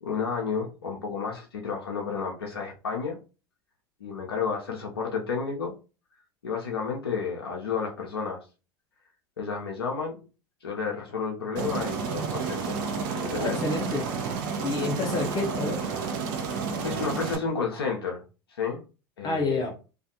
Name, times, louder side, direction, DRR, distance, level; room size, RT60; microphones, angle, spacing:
voice 1, 0.0-3.2 4.0-5.7 6.4-8.4 9.4-10.3 10.6-12.8 13.2-13.6 16.8-18.2 18.5-18.8 19.2-19.7, left 5 dB, 85° left, 0 dB, 0.6 m, -31 dB
Aircraft, 11.6-17.4, right 5 dB, 60° right, 0.5 m, -30 dB
voice 2, 13.4-14.1 14.6-15.8 19.2-19.7, left 3 dB, 35° left, 0 dB, 0.6 m, -29 dB
2.4 x 2.3 x 2.6 m, 0.32 s
hypercardioid pair, 80°, 13 cm